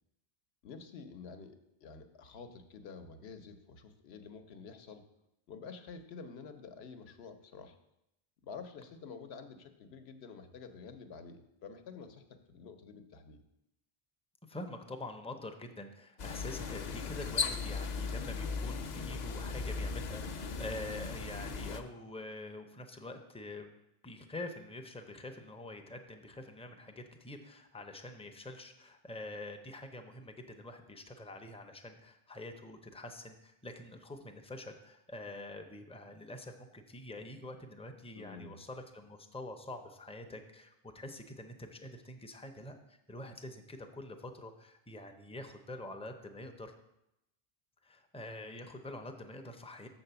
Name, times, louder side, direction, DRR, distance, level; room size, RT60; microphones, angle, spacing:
voice 1, 0.6-5.0 5.5-7.8 8.4-13.4 38.2-38.6, left 5 dB, 80° left, 8 dB, 1.0 m, -49 dB
voice 2, 14.5-23.7 24.0-46.7 47.8-49.9, left 1 dB, 10° left, 5 dB, 0.3 m, -46 dB
sound 1, 16.2-21.8, left 4 dB, 55° left, 0.6 m, -37 dB
6.7 x 4.4 x 6.7 m, 0.85 s
omnidirectional pair, 1.0 m